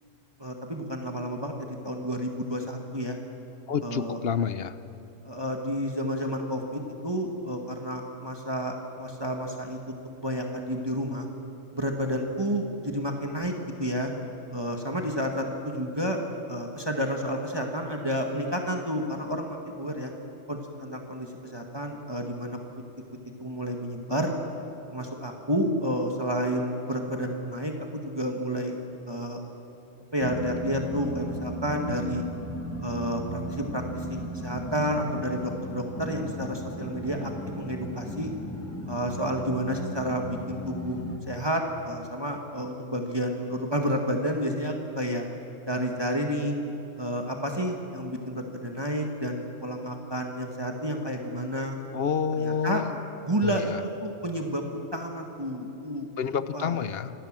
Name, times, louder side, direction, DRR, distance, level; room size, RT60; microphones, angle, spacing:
voice 1, 0.4-3.2 3.8-4.2 5.3-11.3 11.7-13.5 13.8-14.1 14.5-16.2 16.5-20.1 20.5-22.6 23.4-24.3 24.9-28.8 29.1-29.4 30.1-32.2 32.8-38.3 38.9-41.0 41.3-45.2 45.7-46.6 47.0-51.8 52.4-52.8 53.3-53.7 54.0-56.1 56.5-56.8, equal, 20° right, 2 dB, 1.8 m, -30 dB
voice 2, 3.7-4.7 51.9-53.0 53.4-53.8 56.2-57.1, left 7 dB, 55° left, 13 dB, 0.9 m, -28 dB
sound 1, 30.2-41.2, equal, 10° left, 1.7 m, -36 dB
27.0 x 18.0 x 7.5 m, 3.0 s
omnidirectional pair, 1.3 m